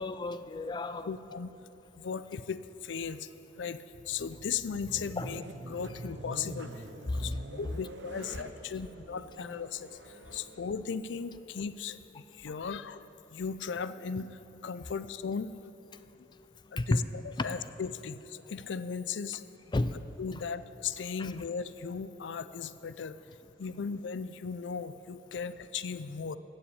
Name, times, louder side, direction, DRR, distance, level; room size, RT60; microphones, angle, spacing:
voice 1, 0.0-1.1 5.2-5.3 7.1-7.3 10.3-10.4 16.8-17.0 17.4-17.5 19.7-20.0 21.2-21.3, left 2 dB, 25° left, 12 dB, 0.4 m, -31 dB
voice 2, 1.1-1.5 2.0-3.3 3.6-6.9 7.1-13.0 13.3-14.3 14.6-15.5 16.7-19.4 20.2-23.2 23.6-26.4, left 6 dB, 85° left, 14 dB, 0.5 m, -37 dB
sound 1, 3.9-11.7, right 2 dB, 80° right, 0.8 m, -46 dB
14.5 x 7.0 x 8.7 m, 3.0 s
head